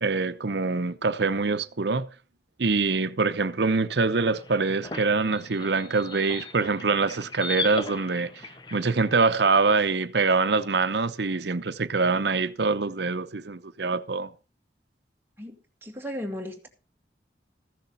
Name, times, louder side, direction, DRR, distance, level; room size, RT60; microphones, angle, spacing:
voice 1, 0.0-2.1 2.6-14.3, right 4 dB, 70° right, 0.8 m, -24 dB
sound 1, 4.1-9.6, left 3 dB, 25° left, 0.8 m, -38 dB
voice 2, 15.4-16.7, equal, 15° right, 2.0 m, -36 dB
14.5 x 6.7 x 5.6 m
head